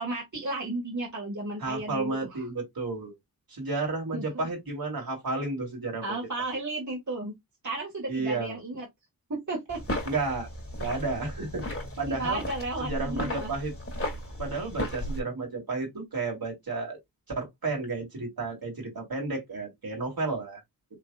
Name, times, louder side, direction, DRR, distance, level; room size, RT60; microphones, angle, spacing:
voice 1, 0.0-2.4 4.1-4.3 6.0-7.4 7.6-8.9 9.3-9.8 12.1-13.5, right 2 dB, 50° right, 2.0 m, -33 dB
voice 2, 1.6-3.1 3.5-6.2 8.1-8.6 10.0-10.5 10.8-11.6 12.0-12.4 12.8-13.7 14.4-17.0 17.3-20.6, right 3 dB, 70° right, 3.1 m, -32 dB
sound 1, 9.7-15.2, left 1 dB, 35° left, 2.7 m, -35 dB
5.8 x 3.6 x 2.4 m
wide cardioid pair, 80°, 37 cm